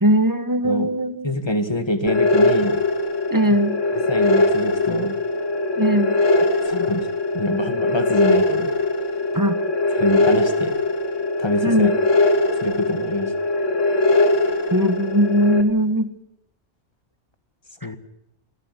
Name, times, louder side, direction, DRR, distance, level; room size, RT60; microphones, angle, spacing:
voice 1, 0.0-1.3 3.3-3.8 5.8-6.2 9.3-9.6 11.6-12.0 14.7-16.2 17.8-17.9, equal, 15° right, 11 dB, 1.2 m, -20 dB
voice 2, 1.2-2.8 3.9-5.2 6.6-7.1 7.3-8.7 9.9-10.8 11.4-11.9 12.6-13.3 17.8-18.0, left 1 dB, 20° left, 9 dB, 1.9 m, -25 dB
sound 1, 2.1-15.6, left 2 dB, 80° left, 2.0 m, -21 dB
29.5 x 11.5 x 9.8 m, 0.81 s
omnidirectional pair, 1.3 m